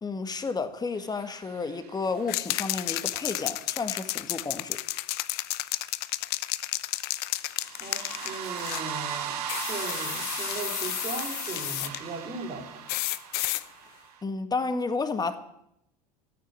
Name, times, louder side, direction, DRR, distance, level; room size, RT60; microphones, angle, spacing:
voice 1, 0.0-4.8 14.2-15.4, left 4 dB, 20° left, 1.7 m, -31 dB
sound 1, 1.2-2.2 7.5-14.2, right 8 dB, 75° right, 1.6 m, -38 dB
sound 2, 2.3-8.9 9.5-12.0 12.9-13.6, left 18 dB, 55° left, 0.7 m, -32 dB
voice 2, 7.8-12.9, right 3 dB, 35° right, 4.5 m, -38 dB
14.0 x 9.3 x 9.9 m
hypercardioid pair, 85°, 20 cm